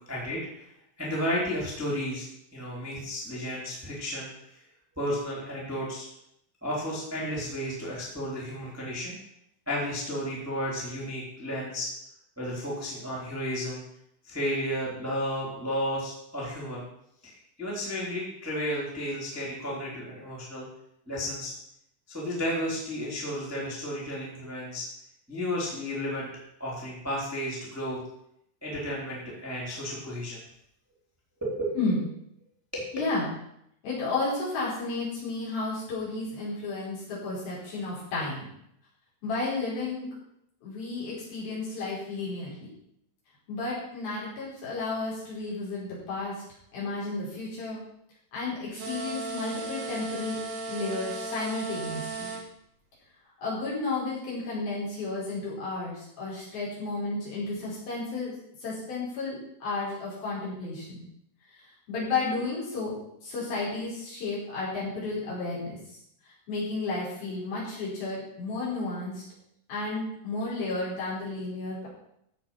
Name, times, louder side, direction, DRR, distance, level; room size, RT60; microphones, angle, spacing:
voice 1, 0.1-0.6 1.0-2.2 2.5-4.3 5.0-6.1 6.6-9.1 9.7-11.9 12.4-13.8 14.2-16.8 17.2-20.6 21.1-21.5 22.1-24.8 25.3-26.3 26.6-28.0 28.6-30.4 31.4-31.7 32.7-32.9, equal, 5° right, -6 dB, 2.8 m, -32 dB
voice 2, 32.9-33.3 33.8-38.5 39.2-40.1 40.6-42.7 43.5-46.4 46.7-47.8 48.3-50.4 50.7-52.3 53.4-61.0 61.9-65.8 66.5-69.2 69.7-71.9, left 3 dB, 55° left, -7 dB, 6.6 m, -32 dB
sound 1, 48.7-52.4, right 3 dB, 60° right, 1.4 m, -36 dB
15.0 x 6.3 x 5.9 m, 0.75 s
omnidirectional pair, 5.3 m